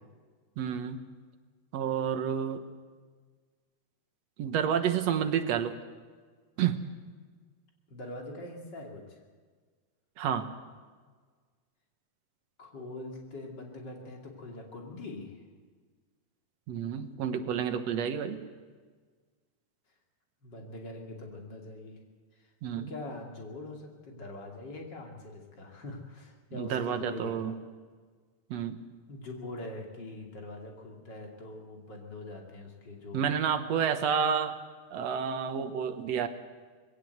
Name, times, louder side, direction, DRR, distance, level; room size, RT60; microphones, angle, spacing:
voice 1, 0.6-1.0 1.7-2.6 4.4-5.7 6.6-6.8 10.2-10.5 16.7-18.4 22.6-22.9 26.5-27.5 28.5-28.8 33.1-34.6 34.9-36.3, right 8 dB, 65° right, 8 dB, 2.2 m, -30 dB
voice 2, 7.9-9.2 12.6-15.4 20.4-22.0 22.4-22.5 22.7-27.6 29.1-33.3, left 2 dB, 35° left, 1 dB, 3.2 m, -43 dB
21.0 x 17.0 x 8.0 m, 1.5 s
omnidirectional pair, 3.4 m